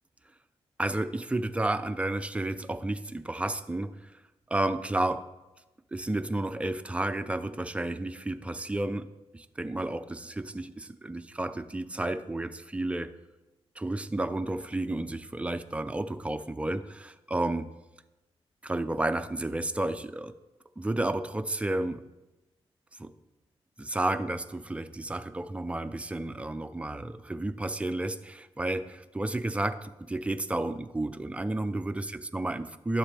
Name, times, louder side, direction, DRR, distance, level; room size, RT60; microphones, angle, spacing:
voice 1, 0.8-4.1 4.5-5.2 5.9-9.1 9.3-13.1 13.8-17.7 18.6-20.3 20.8-22.0 23.0-23.1 23.8-33.0, right 2 dB, 10° right, 9 dB, 0.5 m, -31 dB
12.0 x 7.3 x 3.4 m, 1.0 s
cardioid pair, 80°, 11 cm